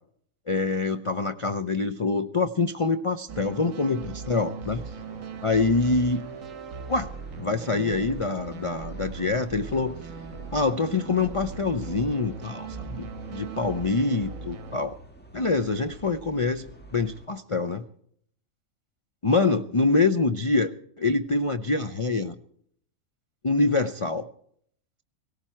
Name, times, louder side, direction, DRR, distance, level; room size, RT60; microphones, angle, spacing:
voice 1, 0.5-4.9 5.4-6.3 6.9-7.1 7.4-10.0 10.5-15.0 15.3-16.6 16.9-17.9 19.2-20.7 21.0-22.4 23.4-24.3, left 3 dB, 45° left, 9 dB, 0.4 m, -25 dB
sound 1, 3.3-14.8, right 5 dB, 65° right, 1.4 m, -39 dB
sound 2, 4.7-17.3, right 2 dB, 5° left, 1.6 m, -47 dB
18.0 x 17.0 x 4.5 m, 0.66 s
omnidirectional pair, 1.5 m